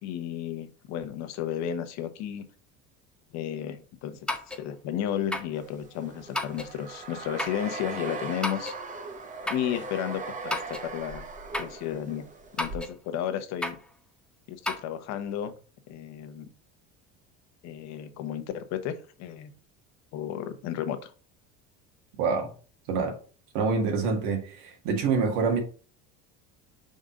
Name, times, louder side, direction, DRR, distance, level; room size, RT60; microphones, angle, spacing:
voice 1, 0.0-2.4 3.3-4.2 4.6-8.7 9.5-11.3 11.6-12.3 12.6-13.8 14.5-15.5 15.9-16.5 17.6-19.5 20.1-21.1, left 10 dB, 60° left, 1.0 m, -33 dB
sound 1, 4.3-4.7 5.3-5.6 6.3-6.7 7.4-7.7 8.4-8.8 9.5-9.7 10.5-10.9 11.5-11.8 12.6-13.0 13.6-13.9 14.6-14.8, left 1 dB, 5° left, 0.7 m, -32 dB
sound 2, 5.6-12.8, right 3 dB, 25° right, 1.1 m, -39 dB
voice 2, 22.2-22.5 22.9-23.2 23.5-25.6, right 4 dB, 80° right, 1.8 m, -26 dB
5.2 x 3.8 x 5.0 m
supercardioid pair, 120°, 31 cm